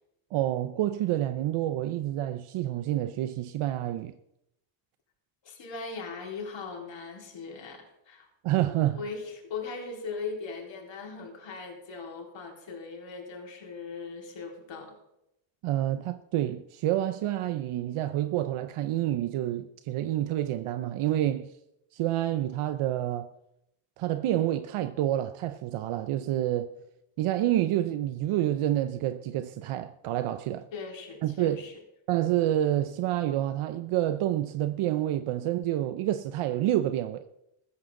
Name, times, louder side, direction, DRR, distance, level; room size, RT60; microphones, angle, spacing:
voice 1, 0.3-4.1 8.4-9.0 15.6-21.5 21.9-23.3 24.0-26.7 27.2-30.7 31.2-31.7 32.1-37.3, right 13 dB, 80° right, 0.8 m, -28 dB
voice 2, 5.4-8.3 8.9-15.0 30.7-31.7, left 4 dB, 60° left, 4.2 m, -39 dB
15.5 x 14.0 x 3.8 m
cardioid pair, 95°, 50 cm